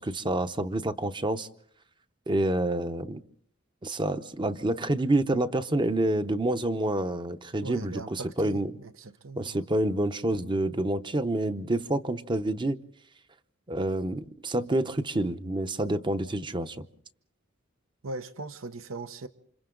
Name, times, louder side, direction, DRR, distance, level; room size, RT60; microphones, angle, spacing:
voice 1, 0.0-1.5 2.3-3.2 3.8-8.7 9.4-12.8 13.7-16.9, right 1 dB, 25° right, 0.8 m, -28 dB
voice 2, 7.6-9.7 18.0-19.3, right 3 dB, 80° right, 1.0 m, -40 dB
28.5 x 26.5 x 3.9 m
head